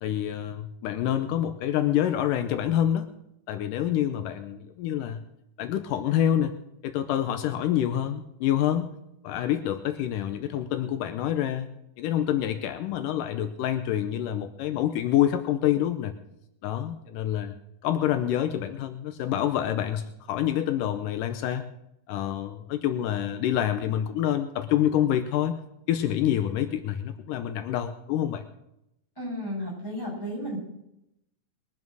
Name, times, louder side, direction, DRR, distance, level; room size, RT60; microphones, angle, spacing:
voice 1, 0.0-3.1 3.5-5.2 5.6-6.5 6.8-8.9 9.2-11.7 12.0-16.1 16.6-17.5 17.8-21.6 22.1-25.5 25.9-28.4, left 11 dB, 80° left, 8 dB, 2.4 m, -27 dB
voice 2, 29.2-30.6, equal, 5° left, -4 dB, 6.9 m, -33 dB
21.5 x 7.5 x 6.2 m, 0.82 s
omnidirectional pair, 3.7 m